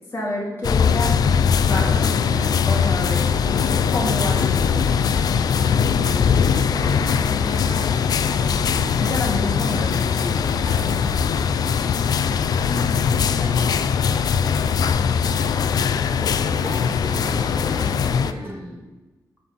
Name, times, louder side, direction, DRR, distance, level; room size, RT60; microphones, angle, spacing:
voice 1, 0.1-1.1 1.6-3.2 3.9-4.8 9.0-10.5, left 1 dB, 35° left, -4 dB, 2.7 m, -28 dB
sound 1, 0.6-18.3, left 7 dB, 75° left, 0.5 m, -21 dB
sound 2, 1.5-18.6, right 1 dB, 35° right, 1.2 m, -41 dB
sound 3, 1.7-18.4, right 3 dB, 60° right, 1.4 m, -42 dB
voice 2, 6.7-8.0 12.5-13.7 16.5-18.8, equal, 10° left, -4 dB, 2.3 m, -35 dB
11.5 x 4.3 x 7.7 m, 1.2 s
wide cardioid pair, 145°, 7 cm